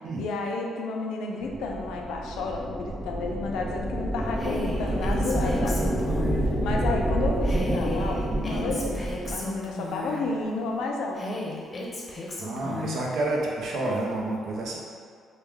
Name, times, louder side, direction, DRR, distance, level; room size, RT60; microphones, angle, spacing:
voice 1, 0.2-11.2, left 3 dB, 85° left, 1 dB, 0.4 m, -31 dB
sound 1, 1.4-9.5, right 1 dB, 15° right, 0.6 m, -28 dB
Female speech woman speaking, 4.4-6.5 7.4-10.3 11.1-13.0, left 2 dB, 30° left, 0.6 m, -35 dB
voice 2, 12.4-14.8, right 2 dB, 70° right, -2 dB, 0.6 m, -29 dB
3.1 x 2.2 x 3.5 m, 2.1 s
cardioid pair, 90°, 0 cm